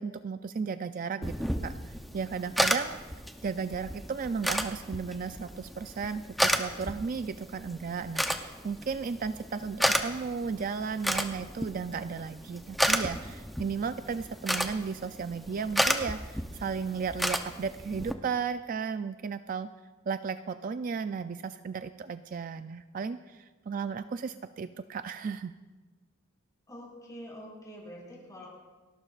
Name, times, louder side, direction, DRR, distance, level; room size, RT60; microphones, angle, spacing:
voice 1, 0.0-3.0 3.4-19.7 20.1-25.5, right 5 dB, 40° right, 10 dB, 0.3 m, -35 dB
sound 1, 1.2-18.1, equal, ahead, 0.6 m, -33 dB
voice 2, 26.7-28.5, equal, 15° left, -4 dB, 5.9 m, -45 dB
30.0 x 12.0 x 2.4 m, 1.3 s
head